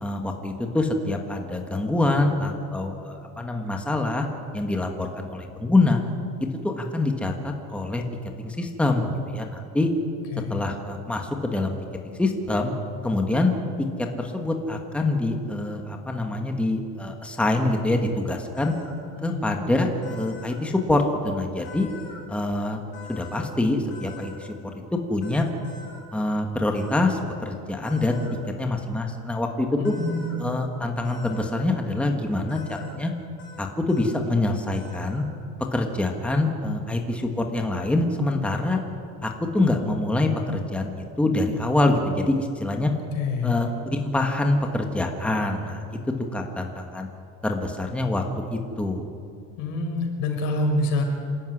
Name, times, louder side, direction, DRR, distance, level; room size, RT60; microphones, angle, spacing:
voice 1, 0.0-4.3 4.5-6.0 6.6-8.0 8.4-9.9 10.5-11.8 12.0-12.7 13.0-13.5 14.0-18.7 19.2-21.9 22.3-22.8 23.1-25.5 26.1-29.9 30.4-33.1 33.6-35.2 35.7-38.8 39.2-42.9 43.4-47.1 47.4-48.2 48.5-49.1, left 2 dB, 5° left, 3 dB, 1.5 m, -25 dB
sound 1, 18.5-18.9 20.0-20.5 21.6-22.2 22.9-23.4 23.9-24.3 25.2-26.0 26.7-27.0 27.8-28.3 29.8-30.3 31.0-31.5 32.5-32.9 33.4-33.6 33.9-34.2 34.7-35.2, left 3 dB, 40° left, 6.8 m, -45 dB
voice 2, 19.2-19.5 29.8-30.5 42.9-43.6 49.6-51.0, left 2 dB, 85° left, 3 dB, 5.3 m, -27 dB
27.5 x 13.0 x 9.8 m, 2.3 s
cardioid pair, 170°, 32 cm